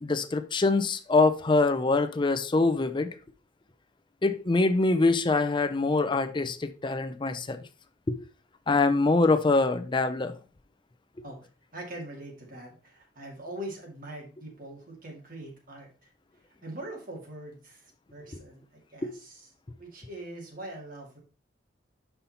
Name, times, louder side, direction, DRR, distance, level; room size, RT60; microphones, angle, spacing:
voice 1, 0.0-3.1 4.2-7.6 8.1-8.2 8.7-10.3 19.0-19.1, left 3 dB, 25° left, 0.5 m, -24 dB
voice 2, 11.7-16.1 16.6-19.5 19.8-21.2, right 1 dB, 50° right, 2.3 m, -42 dB
5.6 x 5.4 x 4.1 m
head